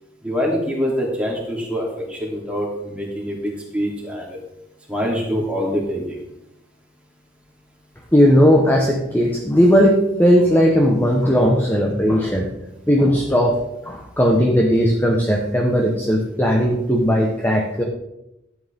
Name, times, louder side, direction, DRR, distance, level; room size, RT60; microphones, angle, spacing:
voice 1, 0.2-4.4 4.9-6.2, equal, 5° right, -4 dB, 3.1 m, -25 dB
voice 2, 8.1-12.5 12.9-13.6 13.9-17.8, equal, 10° left, 0 dB, 1.1 m, -17 dB
13.5 x 9.1 x 3.6 m, 0.88 s
head